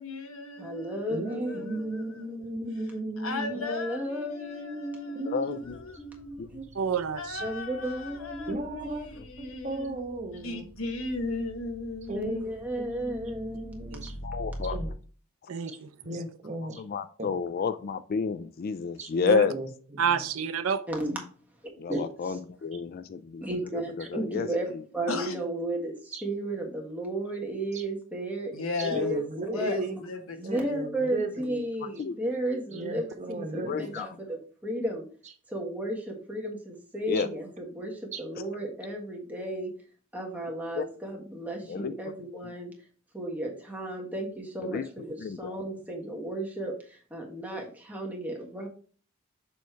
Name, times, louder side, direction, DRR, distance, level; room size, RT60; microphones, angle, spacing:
voice 1, 0.0-2.2 3.2-5.4 5.7-6.5 7.1-8.6 9.0-10.0 10.3-12.5 25.1-25.4 28.5-29.1 29.5-30.7, left 3 dB, 75° left, 1.2 m, -36 dB
voice 2, 0.6-2.7 3.5-5.6 6.0-6.4 7.4-9.0 9.4-9.5 12.1-14.2 20.9-21.2 21.9-22.4 23.4-29.2 29.5-29.9 30.4-35.0 35.5-39.7 40.1-42.7 43.1-48.7, right 1 dB, 10° right, 1.5 m, -34 dB
voice 3, 1.1-3.7 5.2-5.6 6.5-6.7 8.5-9.1 9.6-10.6 12.1-14.2 14.7-14.9 16.0-16.8 17.2-17.3 19.0-19.1 19.4-20.5 26.1-26.2 27.7-27.8 28.9-30.0 30.4-31.7 32.7-34.0 37.2-37.3 38.1-38.2, right 2 dB, 35° right, 1.1 m, -36 dB
voice 4, 5.3-6.0 6.4-6.5 14.2-14.8 16.8-19.5 21.8-23.4 24.0-24.5 32.0-32.1 33.7-34.1 37.1-37.3 40.8-40.9 41.7-41.9 44.6-44.8 45.2-45.6, left 5 dB, 45° left, 0.3 m, -30 dB
sound 1, 5.6-14.9, equal, 20° left, 1.0 m, -44 dB
voice 5, 6.8-7.4 13.9-14.1 15.5-15.9 19.2-19.4 20.0-20.8, right 7 dB, 75° right, 0.5 m, -29 dB
6.9 x 3.1 x 4.5 m
head